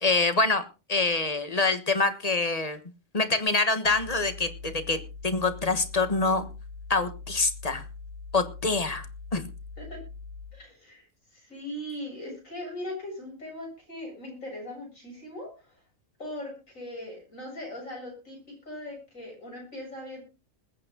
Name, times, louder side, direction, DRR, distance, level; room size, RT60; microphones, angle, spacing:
voice 1, 0.0-0.6 0.9-2.8 3.1-6.5 6.9-7.8 8.3-9.1 9.3-9.4, left 3 dB, 30° left, 10 dB, 1.4 m, -25 dB
sound 1, 3.8-10.6, left 4 dB, 60° right, 2.5 m, -42 dB
voice 2, 10.5-15.8 16.2-20.2, left 1 dB, 85° left, 0 dB, 7.9 m, -40 dB
21.0 x 8.9 x 3.8 m, 0.31 s
omnidirectional pair, 1.4 m